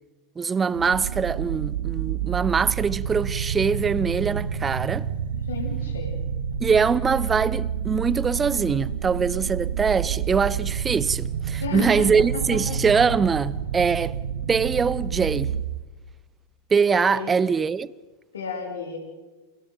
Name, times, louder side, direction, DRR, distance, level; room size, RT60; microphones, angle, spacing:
voice 1, 0.4-5.1 6.6-14.2 14.5-15.5 16.7-17.9, right 5 dB, 15° right, 0.7 m, -23 dB
sound 1, 0.7-15.6, right 8 dB, 65° right, 1.8 m, -29 dB
voice 2, 5.5-6.2 11.6-12.6 17.1-17.3 18.3-19.0, left 4 dB, 70° left, 7.9 m, -32 dB
30.0 x 29.5 x 4.0 m
figure-of-eight pair, 90°, 0 cm